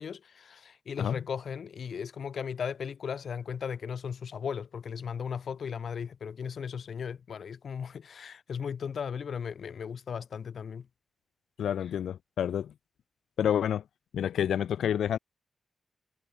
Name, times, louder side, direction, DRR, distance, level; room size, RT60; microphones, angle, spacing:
voice 1, 0.0-10.9, left 7 dB, 70° left, 5.4 m, -36 dB
voice 2, 11.6-12.7 13.4-13.8 14.1-15.2, left 9 dB, 90° left, 1.0 m, -28 dB
cardioid pair, 60°, 0 cm